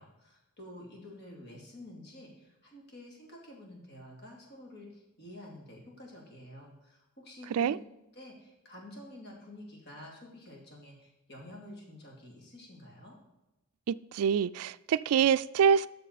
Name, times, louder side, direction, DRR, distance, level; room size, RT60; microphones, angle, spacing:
voice 1, 0.0-7.8 8.1-13.2, left 1 dB, 50° left, -1 dB, 2.6 m, -49 dB
voice 2, 13.9-15.9, right 7 dB, 85° right, 17 dB, 0.3 m, -25 dB
13.0 x 6.7 x 4.1 m, 0.99 s
head